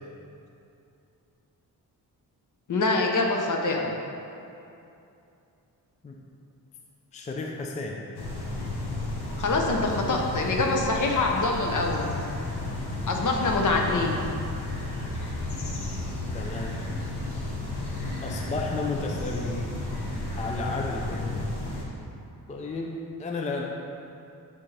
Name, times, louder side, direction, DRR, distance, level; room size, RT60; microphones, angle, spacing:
voice 1, 2.7-3.9 9.4-12.1 13.0-14.2, left 3 dB, 50° left, 1 dB, 0.8 m, -25 dB
voice 2, 7.1-8.0 13.7-14.2 16.3-16.8 18.2-19.8 20.1-21.5 22.5-23.6, left 3 dB, 20° left, 0 dB, 0.4 m, -33 dB
sound 1, 8.1-21.8, left 2 dB, 80° left, 1.1 m, -33 dB
8.4 x 3.8 x 3.3 m, 2.7 s
wide cardioid pair, 110°, 39 cm